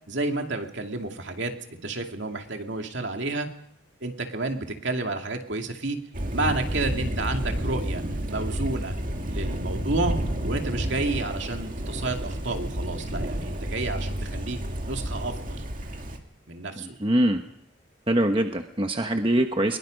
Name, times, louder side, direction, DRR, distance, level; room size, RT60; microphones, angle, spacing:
voice 1, 0.1-3.5 4.0-6.0 6.3-8.0 8.3-8.9 9.3-10.2 10.4-14.6 14.9-15.6 16.5-17.0, right 2 dB, 65° right, 4 dB, 2.5 m, -30 dB
Thunder, 6.1-16.2, equal, 40° right, 2.3 m, -30 dB
voice 2, 16.8-17.4 18.1-19.8, right 1 dB, 25° right, 5 dB, 1.2 m, -23 dB
23.0 x 22.5 x 5.3 m, 0.72 s
head